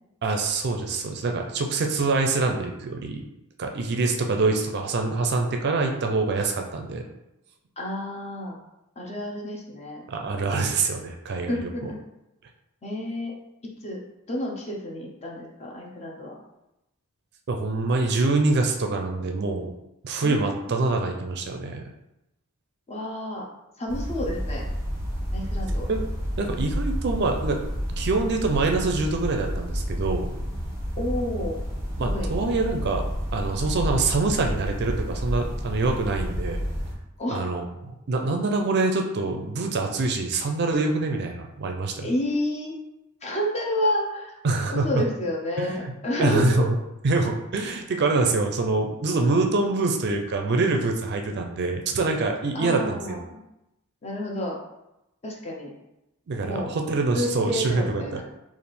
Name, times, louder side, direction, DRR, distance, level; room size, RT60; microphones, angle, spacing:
voice 1, 0.2-3.3 3.6-7.0 10.1-11.9 17.5-19.7 20.0-21.8 25.9-26.0 26.4-27.6 27.9-30.3 32.0-33.0 33.3-36.6 37.3-42.1 44.4-44.9 45.6-45.9 46.2-46.8 47.0-53.2 56.3-58.2, right 3 dB, 50° right, 3 dB, 0.4 m, -25 dB
voice 2, 7.8-8.6 9.0-10.0 11.5-12.0 12.8-13.3 13.8-14.0 14.3-16.4 20.2-20.6 22.9-23.4 23.8-24.6 25.3-25.9 31.0-31.6 32.0-32.3 37.2-37.6 42.0-42.8 43.2-44.4 44.7-46.5 52.5-53.4 54.0-54.6 55.2-55.7 56.4-56.7 57.1-58.2, left 1 dB, 30° left, -1 dB, 0.7 m, -30 dB
sound 1, 23.9-36.9, equal, 15° right, 1.1 m, -30 dB
3.4 x 2.5 x 4.1 m, 0.90 s
head